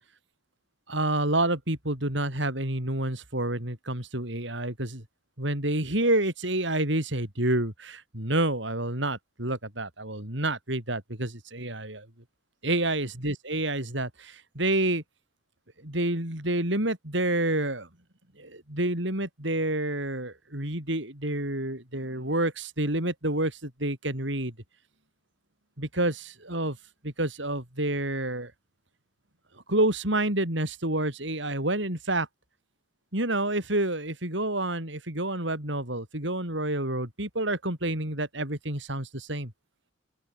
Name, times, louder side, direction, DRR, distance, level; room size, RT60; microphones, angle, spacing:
voice 1, 0.9-5.0 5.4-12.1 12.6-15.0 15.8-17.9 18.4-24.5 25.8-26.8 27.0-28.5 29.7-32.3 33.1-39.5, right 1 dB, 65° right, 6.2 m, -28 dB
open air
head